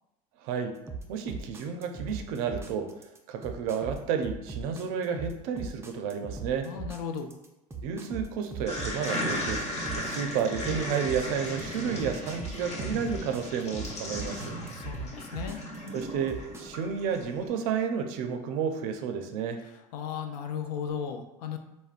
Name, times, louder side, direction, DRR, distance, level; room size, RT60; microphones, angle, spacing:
voice 1, 0.4-0.7 1.1-2.9 3.3-6.7 7.8-9.6 9.9-14.6 15.9-19.6, right 7 dB, 70° right, 6 dB, 0.5 m, -31 dB
sound 1, 0.9-16.6, right 4 dB, 15° right, 0.4 m, -39 dB
voice 2, 6.6-7.3 14.6-15.6 19.9-21.6, left 7 dB, 80° left, 6 dB, 0.4 m, -35 dB
sound 2, 8.7-17.2, equal, 35° left, 1.0 m, -36 dB
3.4 x 2.1 x 2.4 m, 0.91 s
supercardioid pair, 90°, 19 cm